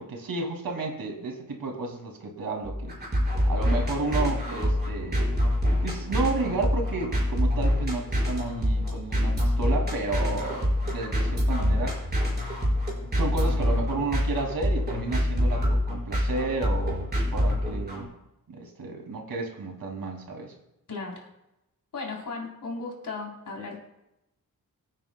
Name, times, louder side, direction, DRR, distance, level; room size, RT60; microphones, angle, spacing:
voice 1, 0.0-2.9 3.5-5.3 5.8-12.0 13.2-18.1 18.5-20.5, right 3 dB, 80° right, 2 dB, 2.4 m, -32 dB
sound 1, 2.6-18.0, equal, 30° right, 5.1 m, -26 dB
voice 2, 20.9-21.3 21.9-23.8, left 3 dB, 60° left, -2 dB, 3.5 m, -36 dB
24.0 x 9.0 x 2.2 m, 0.90 s
wide cardioid pair, 145°, 35 cm